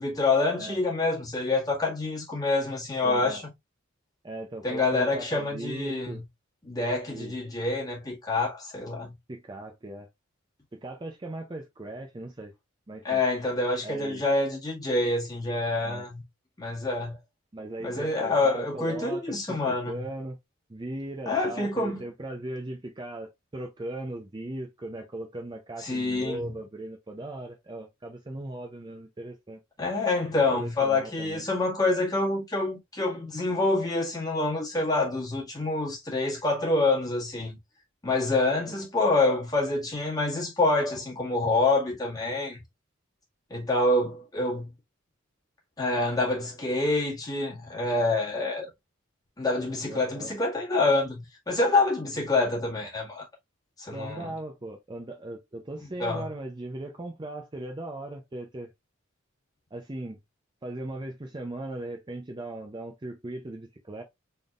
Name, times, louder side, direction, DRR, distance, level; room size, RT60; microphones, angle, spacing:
voice 1, 0.0-3.5 4.6-6.2 6.6-9.2 13.0-16.2 16.6-17.2 17.8-20.1 21.2-22.0 25.8-26.5 29.8-37.6 38.0-42.6 43.5-44.7 45.8-48.7 49.4-53.3 53.8-54.3 56.0-56.3, left 2 dB, 20° left, 1.6 m, -27 dB
voice 2, 3.0-3.4 4.2-6.2 7.1-7.4 9.3-10.1 10.7-12.5 12.9-13.2 13.8-14.2 15.8-16.1 17.5-20.4 20.7-29.6 30.5-31.4 38.7-38.8 49.9-50.3 53.9-58.7 59.7-60.2 60.6-64.0, right 1 dB, 20° right, 0.5 m, -38 dB
4.0 x 3.5 x 2.4 m
head